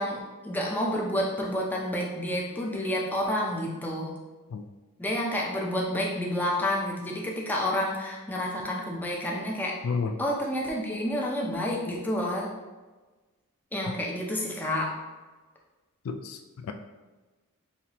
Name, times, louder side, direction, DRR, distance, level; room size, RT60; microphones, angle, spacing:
voice 1, 0.0-4.1 5.0-9.7 10.2-12.5 13.7-14.9, left 1 dB, 10° left, -2 dB, 0.6 m, -29 dB
voice 2, 16.1-16.7, left 5 dB, 65° left, 6 dB, 0.3 m, -31 dB
5.6 x 2.8 x 2.9 m, 1.2 s
head